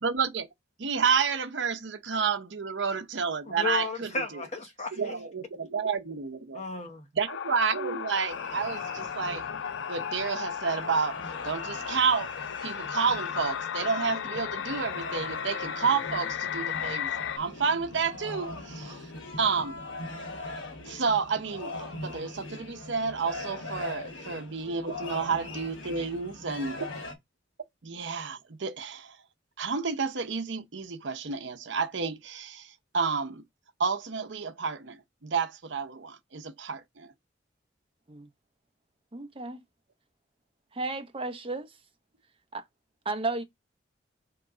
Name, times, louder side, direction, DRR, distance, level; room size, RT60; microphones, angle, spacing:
voice 1, 0.0-0.5 0.8-4.4 5.0-6.6 7.1-9.4 9.9-11.2 11.4-12.3 12.6-17.1 17.4-19.0 19.4-19.8 20.8-26.9 27.8-29.2 29.6-33.4 33.8-37.1, right 5 dB, 70° right, 0.7 m, -30 dB
voice 2, 3.4-5.1 6.5-7.1, left 3 dB, 35° left, 0.9 m, -34 dB
sound 1, 7.3-17.4, left 8 dB, 65° left, 0.3 m, -35 dB
sound 2, 8.3-27.1, left 2 dB, 90° left, 1.2 m, -41 dB
voice 3, 39.1-39.6 40.7-41.7 42.5-42.6 43.0-43.4, right 3 dB, 30° right, 0.7 m, -33 dB
3.6 x 3.1 x 4.8 m
head